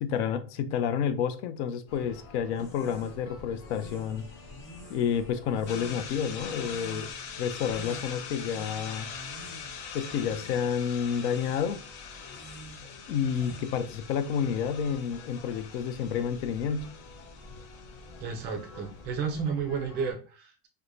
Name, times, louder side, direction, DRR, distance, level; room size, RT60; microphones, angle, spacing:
voice 1, 0.0-4.2 4.9-7.1 7.4-9.1 9.9-11.8 13.1-16.9, left 7 dB, 55° left, 0.5 m, -30 dB
sound 1, 1.9-20.1, left 3 dB, 35° left, 1.3 m, -49 dB
sound 2, 2.5-14.0, left 1 dB, 5° left, 0.9 m, -49 dB
sound 3, 5.7-19.0, left 7 dB, 75° left, 0.9 m, -43 dB
voice 2, 18.2-20.7, right 6 dB, 25° right, 0.5 m, -32 dB
4.5 x 2.2 x 2.5 m
supercardioid pair, 165°, 41 cm